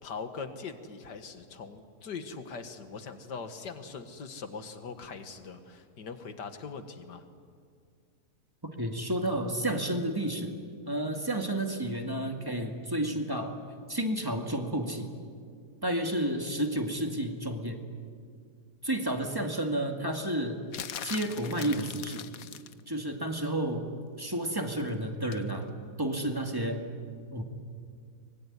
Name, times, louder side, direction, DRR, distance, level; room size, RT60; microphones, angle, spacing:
voice 1, 0.0-7.2, left 5 dB, 80° left, 8 dB, 2.2 m, -41 dB
voice 2, 8.6-10.6 10.9-13.5 13.9-15.1 15.8-17.8 18.8-20.6 21.0-22.3 22.9-23.9 24.2-25.7 26.0-26.8 27.3-27.4, right 1 dB, 15° right, 3 dB, 2.1 m, -31 dB
sound 1, 20.7-22.8 25.3-25.5, left 9 dB, 60° left, 1.2 m, -41 dB
24.5 x 21.5 x 9.9 m, 2.2 s
omnidirectional pair, 1.8 m